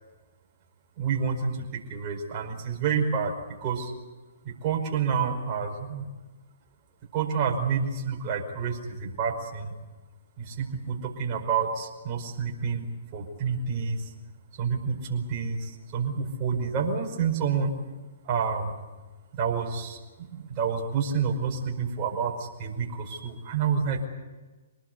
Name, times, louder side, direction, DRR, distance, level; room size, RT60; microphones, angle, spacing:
voice 1, 1.0-3.3 3.6-3.9 4.5-6.1 7.1-9.7 10.4-12.9 13.1-14.0 14.6-17.7 18.2-18.7 19.3-24.0, right 6 dB, 35° right, 0 dB, 5.2 m, -29 dB
25.5 x 19.5 x 8.2 m, 1.2 s
hypercardioid pair, 140°, 0 cm